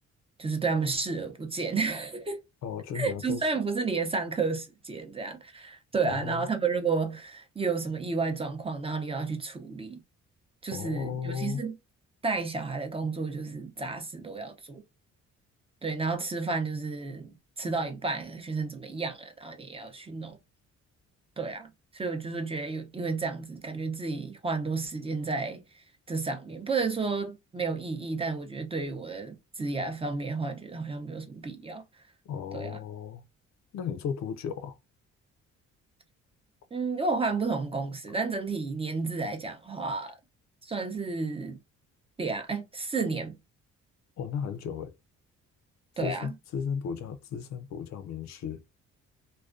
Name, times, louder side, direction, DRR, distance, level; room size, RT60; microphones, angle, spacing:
voice 1, 0.4-2.4 2.9-10.0 10.6-11.7 12.2-14.8 15.8-20.4 21.4-31.8 32.5-32.8 36.7-40.1 40.6-41.6 42.2-43.4 46.0-46.3, right 4 dB, 20° right, 0.5 m, -32 dB
voice 2, 2.6-3.5 6.0-6.5 10.7-11.6 32.3-33.2 33.7-34.8 44.2-44.9 46.0-48.6, left 7 dB, 65° left, 0.5 m, -35 dB
2.3 x 2.2 x 2.4 m
cardioid pair, 90°, 30 cm